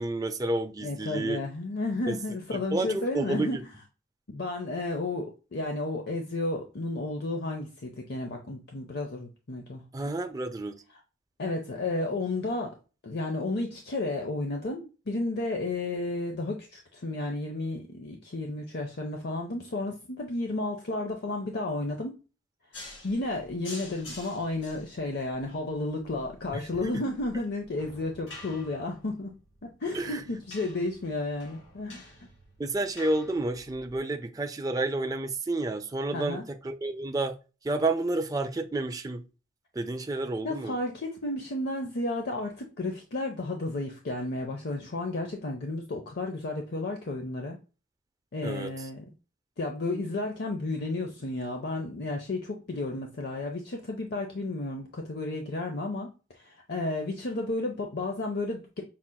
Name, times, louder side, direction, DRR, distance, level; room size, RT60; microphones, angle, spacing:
voice 1, 0.0-1.4 2.1-2.2 2.5-3.6 9.9-10.7 26.5-26.9 29.9-30.2 32.6-37.4 37.6-39.2 39.8-40.8 48.4-48.7, right 2 dB, 20° right, 0.4 m, -30 dB
voice 2, 0.8-3.7 4.3-9.8 11.4-12.8 13.0-22.2 23.0-32.1 36.1-36.5 40.4-47.6 48.3-49.1 49.6-58.8, left 2 dB, 55° left, 0.6 m, -32 dB
sound 1, 22.7-34.0, left 2 dB, 75° left, 2.3 m, -48 dB
5.9 x 3.7 x 2.2 m
head